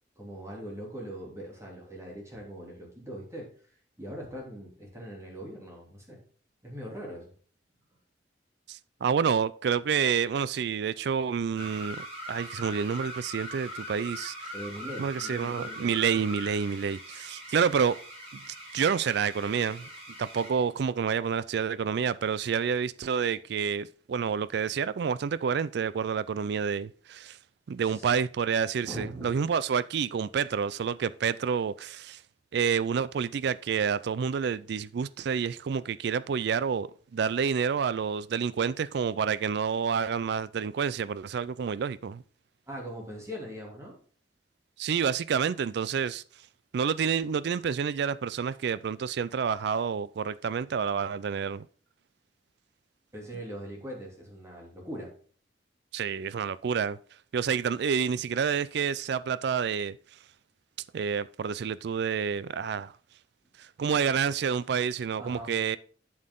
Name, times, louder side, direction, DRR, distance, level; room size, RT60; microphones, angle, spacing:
voice 1, 0.2-3.5 4.0-6.2 6.6-7.3 14.5-15.9 27.8-28.1 28.8-29.3 42.7-44.0 53.1-55.1 65.2-65.5, equal, 15° right, 3.2 m, -41 dB
voice 2, 8.7-14.4 15.0-18.0 18.3-19.9 20.2-27.4 27.7-32.2 32.5-42.2 44.8-46.2 46.7-51.7 55.9-57.0 57.3-60.0 60.9-62.9 63.6-65.8, right 6 dB, 65° right, 0.4 m, -29 dB
sound 1, 11.6-20.6, equal, 35° right, 3.5 m, -42 dB
8.8 x 7.3 x 3.8 m
head